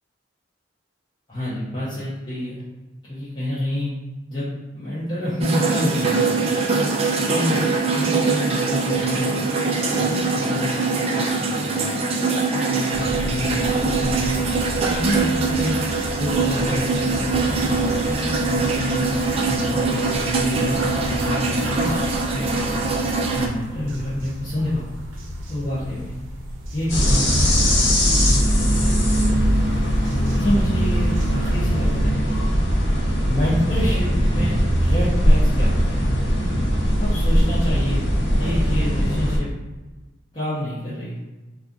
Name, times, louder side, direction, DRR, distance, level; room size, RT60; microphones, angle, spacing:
voice 1, 1.3-2.6 3.1-3.9 4.3-4.5 4.7-6.2 7.1-9.4 9.6-11.7 12.7-14.5 14.8-15.8 16.2-19.0 19.5-22.0 22.3-22.9 23.3-24.9 25.5-26.1 26.7-27.5 28.1-29.6 30.3-32.5 33.3-36.1 37.0-38.0 38.3-39.5 40.3-41.2, left 1 dB, 25° left, -10 dB, 0.7 m, -28 dB
sound 1, 5.4-23.5, right 3 dB, 30° right, 0.3 m, -23 dB
sound 2, 12.9-32.0, equal, 90° right, 0.6 m, -34 dB
sound 3, 26.9-39.4, equal, 80° left, 1.0 m, -19 dB
2.4 x 2.3 x 3.8 m, 1.2 s
head